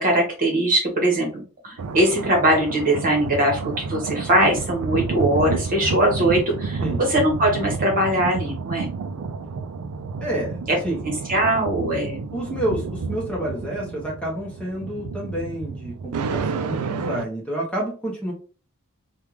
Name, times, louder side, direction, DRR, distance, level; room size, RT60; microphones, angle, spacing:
voice 1, 0.0-8.9 10.7-10.8 11.0-12.2, right 1 dB, 40° right, 0 dB, 1.2 m, -21 dB
sound 1, 1.8-17.2, right 4 dB, 85° right, 0.4 m, -30 dB
voice 2, 10.2-11.0 12.3-18.3, right 1 dB, 5° left, -3 dB, 0.8 m, -29 dB
3.4 x 2.3 x 3.0 m, 0.37 s
head